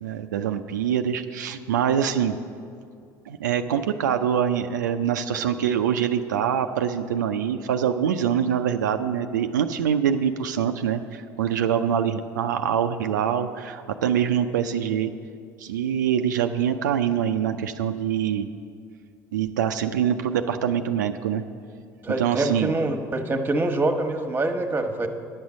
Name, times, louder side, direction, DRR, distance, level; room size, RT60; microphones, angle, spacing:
voice 1, 0.0-2.4 3.3-15.1 15.6-18.5 19.3-21.4 22.2-22.7, right 8 dB, 90° right, 6 dB, 0.4 m, -24 dB
voice 2, 22.0-25.1, right 2 dB, 20° right, 6 dB, 1.2 m, -25 dB
10.0 x 6.4 x 7.2 m, 2.3 s
hypercardioid pair, 70°, 10 cm